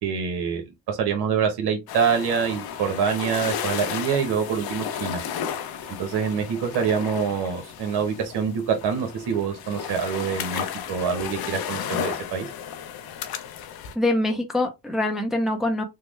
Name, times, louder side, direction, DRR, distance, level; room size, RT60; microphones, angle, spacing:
voice 1, 0.0-5.2 6.0-12.5, right 6 dB, 75° right, 1.0 m, -25 dB
sound 1, 1.9-13.9, left 8 dB, 65° left, 0.7 m, -33 dB
voice 2, 13.9-15.8, left 1 dB, ahead, 0.6 m, -24 dB
3.4 x 2.0 x 3.1 m
cardioid pair, 85°, 39 cm